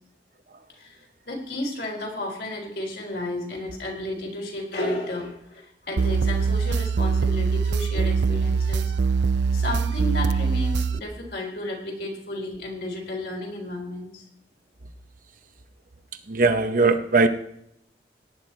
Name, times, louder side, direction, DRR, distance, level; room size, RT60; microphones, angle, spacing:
voice 1, 0.7-9.0 9.5-14.3, left 1 dB, 60° left, 0 dB, 3.7 m, -33 dB
sound 1, 6.0-11.0, right 5 dB, 80° right, 0.5 m, -23 dB
voice 2, 16.3-17.3, right 3 dB, 45° right, 8 dB, 0.9 m, -19 dB
18.0 x 9.3 x 4.4 m, 0.73 s
head